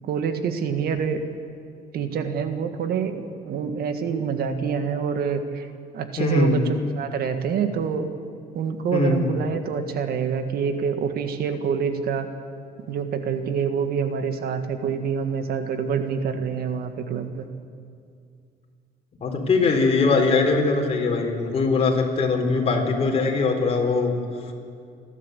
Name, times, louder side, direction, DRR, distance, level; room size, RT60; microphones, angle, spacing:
voice 1, 0.0-1.2 1.9-5.7 5.9-8.1 8.5-12.3 12.9-17.5, right 6 dB, 65° right, 8 dB, 1.7 m, -26 dB
voice 2, 6.2-6.6 8.9-9.3 19.2-24.1, left 3 dB, 35° left, 0 dB, 4.4 m, -21 dB
28.5 x 12.0 x 8.2 m, 2.3 s
cardioid pair, 110°, 17 cm